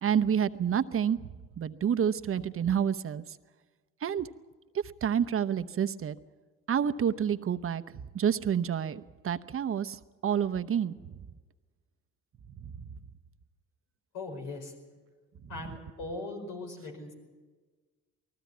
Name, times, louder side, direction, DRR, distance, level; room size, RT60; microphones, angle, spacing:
voice 1, 0.0-1.2 1.6-3.2 4.0-4.3 5.0-6.2 6.7-7.8 8.1-10.9 12.6-12.7, right 8 dB, 45° right, 10 dB, 0.8 m, -28 dB
voice 2, 14.1-14.7 15.5-17.1, left 2 dB, 80° left, 2 dB, 4.9 m, -39 dB
19.5 x 15.5 x 9.4 m, 1.4 s
supercardioid pair, 65°, 31 cm